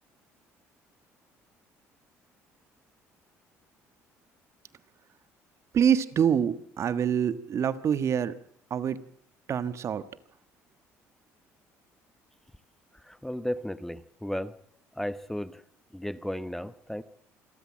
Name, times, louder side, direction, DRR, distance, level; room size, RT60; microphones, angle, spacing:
voice 1, 5.7-8.3 8.7-9.0 9.5-10.0, right 8 dB, 50° right, 14 dB, 1.4 m, -25 dB
voice 2, 12.9-14.6 14.9-15.6 15.9-17.0, equal, 5° left, 15 dB, 1.0 m, -34 dB
27.0 x 13.0 x 7.5 m, 0.66 s
supercardioid pair, 85°, 6 cm